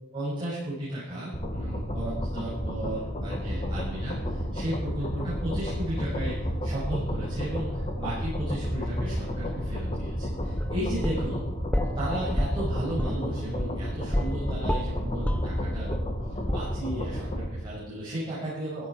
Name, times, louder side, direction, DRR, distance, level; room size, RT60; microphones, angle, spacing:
voice 1, 0.1-11.4 11.9-15.9 16.2-18.9, right 1 dB, 25° right, -10 dB, 6.9 m, -34 dB
sound 1, 1.3-17.5, equal, 30° left, 1.9 m, -31 dB
sound 2, 10.4-12.0 12.4-14.4 14.7-16.2 16.5-16.6, equal, 5° left, 0.8 m, -30 dB
16.0 x 14.5 x 5.0 m, 0.97 s
head